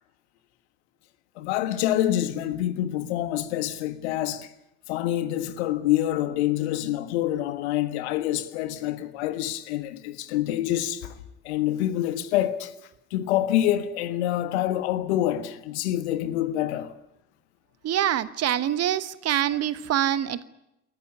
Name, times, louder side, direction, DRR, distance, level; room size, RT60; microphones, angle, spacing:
voice 1, 1.4-4.5 4.9-11.1 11.4-12.7 13.1-16.9, left 13 dB, 70° left, 1.6 m, -26 dB
voice 2, 17.8-20.5, right 11 dB, 45° right, 1.2 m, -25 dB
28.0 x 14.5 x 9.8 m
figure-of-eight pair, 55°, 35 cm